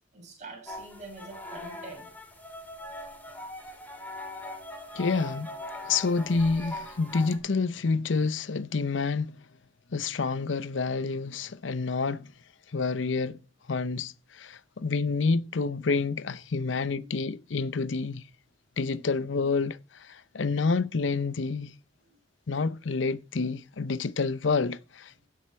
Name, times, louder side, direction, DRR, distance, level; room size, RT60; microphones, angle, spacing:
voice 1, 0.0-2.1 3.3-3.4 5.8-6.2 16.6-17.1 22.0-22.2, right 3 dB, 40° right, 7.2 m, -47 dB
sound 1, 0.7-7.4, left 1 dB, 10° left, 3.1 m, -41 dB
voice 2, 4.9-5.5 5.9-9.3 9.9-12.3 12.7-13.4 13.7-18.2 18.8-21.7 22.5-25.3, left 4 dB, 80° left, 0.7 m, -28 dB
16.5 x 7.9 x 4.3 m
head